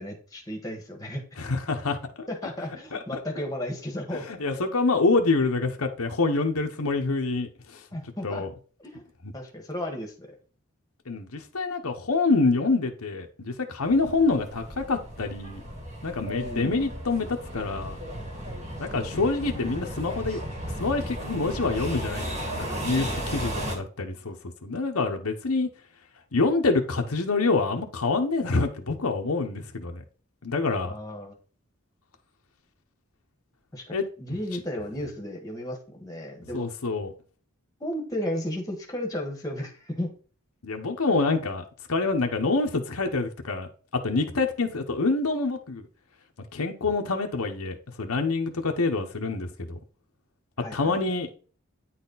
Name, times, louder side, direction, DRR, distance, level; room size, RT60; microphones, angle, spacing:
voice 1, 0.0-1.2 2.3-4.3 7.9-8.4 8.8-9.0 9.3-10.4 16.3-16.9 23.4-23.5 30.8-31.3 33.7-36.7 37.8-40.1 50.6-51.0, left 1 dB, 15° left, 1.5 m, -34 dB
voice 2, 1.4-2.3 2.9-3.2 4.2-7.8 8.2-8.5 11.1-15.6 16.0-18.0 18.8-20.4 20.8-24.3 24.6-25.7 26.3-30.0 30.4-30.9 33.9-34.0 34.3-34.4 36.5-37.1 40.6-43.7 44.0-45.9 46.5-49.8 50.7-51.3, left 3 dB, 85° left, 1.1 m, -26 dB
sound 1, 13.8-23.8, right 1 dB, 30° right, 1.8 m, -35 dB
9.5 x 4.3 x 4.1 m
head